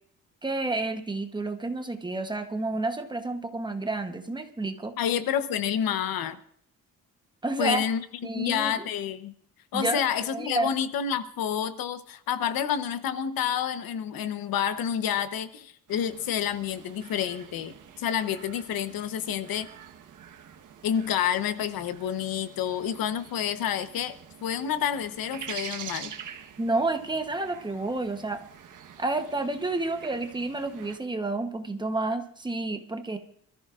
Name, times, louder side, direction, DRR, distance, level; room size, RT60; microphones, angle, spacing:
voice 1, 0.4-4.9 7.4-7.8 8.2-8.9 9.7-10.7 26.6-28.4 29.0-33.2, right 2 dB, 15° right, 6 dB, 1.0 m, -30 dB
voice 2, 5.0-6.4 7.6-8.0 8.3-9.3 9.7-19.7 20.8-26.1, left 9 dB, 90° left, 12 dB, 1.0 m, -29 dB
sound 1, 15.9-31.0, right 8 dB, 65° right, 1.3 m, -46 dB
26.5 x 14.0 x 2.5 m, 0.62 s
cardioid pair, 165°, 34 cm